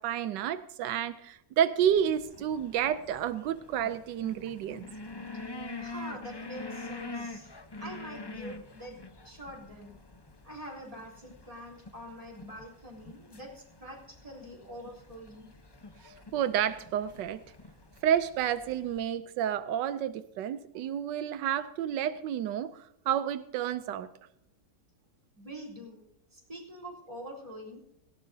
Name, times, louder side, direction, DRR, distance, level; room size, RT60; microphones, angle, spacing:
voice 1, 0.0-4.9 16.0-17.4 18.0-24.1, right 9 dB, 85° right, 13 dB, 1.3 m, -30 dB
sound 1, 1.9-19.1, left 3 dB, 25° left, 0.5 m, -46 dB
voice 2, 5.8-7.5 7.8-9.9 10.4-15.5 25.4-26.0 26.3-27.8, equal, 20° right, -2 dB, 3.7 m, -45 dB
18.0 x 16.5 x 2.7 m, 0.80 s
omnidirectional pair, 1.9 m